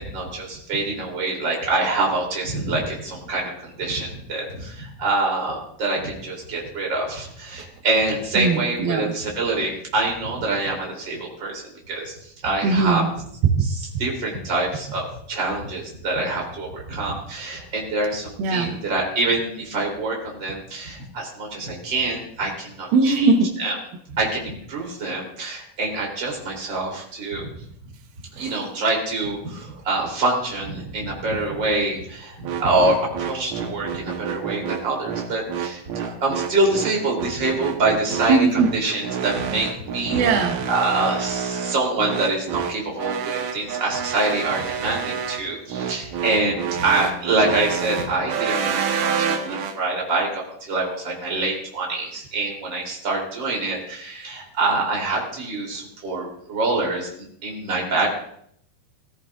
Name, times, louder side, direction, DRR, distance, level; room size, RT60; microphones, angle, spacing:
voice 1, 0.0-11.6 11.9-12.2 12.4-13.1 14.0-23.3 23.6-23.8 24.1-27.5 28.3-38.5 38.7-40.2 40.7-58.1, right 2 dB, 30° right, 0 dB, 3.5 m, -25 dB
voice 2, 8.4-9.1 12.6-13.1 13.5-14.0 18.4-18.7 22.9-23.6 28.4-28.6 29.7-29.8 38.3-38.7 40.1-40.6, right 3 dB, 85° right, 4 dB, 3.0 m, -20 dB
sound 1, 32.4-49.8, right 7 dB, 65° right, 2.1 m, -28 dB
20.5 x 13.5 x 2.5 m, 0.66 s
omnidirectional pair, 4.2 m